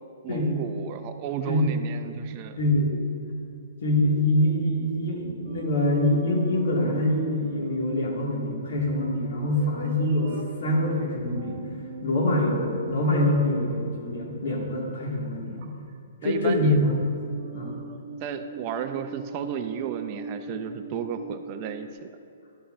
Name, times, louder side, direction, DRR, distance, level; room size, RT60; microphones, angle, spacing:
voice 1, 0.2-2.6 16.2-16.8 18.2-22.1, right 8 dB, 30° right, 6 dB, 0.3 m, -33 dB
voice 2, 2.6-3.0 3.8-11.7 12.0-15.7 16.2-16.9 17.2-17.8, left 1 dB, 65° left, -2 dB, 1.9 m, -25 dB
sound 1, 5.5-14.8 15.6-15.9 16.3-21.9, right 4 dB, 45° right, 0.9 m, -41 dB
11.0 x 8.2 x 2.5 m, 2.5 s
hypercardioid pair, 160°, 0 cm